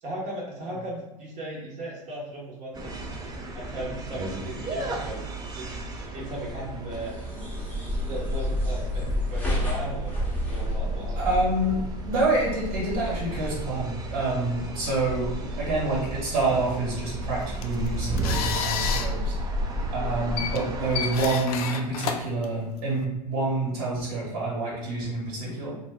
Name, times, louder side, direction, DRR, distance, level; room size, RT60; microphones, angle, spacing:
voice 1, 0.0-3.1 3.5-5.2 5.6-5.7 6.1-7.1 8.1-11.2, right 1 dB, 35° right, -4 dB, 0.9 m, -37 dB
sound 1, 2.7-21.4, right 1 dB, 20° right, 0.5 m, -32 dB
sound 2, 6.9-11.9, left 2 dB, 5° left, 0.8 m, -31 dB
voice 2, 11.2-11.8 12.1-15.3 15.6-19.4 19.9-25.7, right 2 dB, 60° right, -4 dB, 1.3 m, -27 dB
sound 3, 17.4-23.0, left 7 dB, 65° left, 0.4 m, -32 dB
2.5 x 2.2 x 3.4 m, 0.99 s
hypercardioid pair, 95°, 21 cm